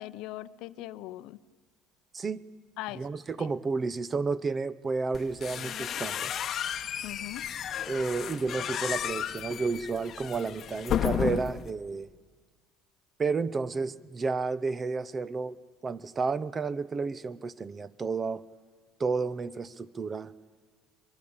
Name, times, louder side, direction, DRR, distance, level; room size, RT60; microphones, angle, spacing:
voice 1, 0.0-1.4 2.8-3.0 3.4-3.5 7.0-7.5, left 16 dB, 65° left, 0.7 m, -40 dB
voice 2, 2.9-6.4 7.9-12.1 13.2-15.6 15.8-18.4 19.0-20.3, right 4 dB, 25° right, 0.7 m, -31 dB
sound 1, 5.1-11.7, left 9 dB, 40° left, 1.0 m, -33 dB
23.0 x 22.5 x 8.8 m
cardioid pair, 125°, 0 cm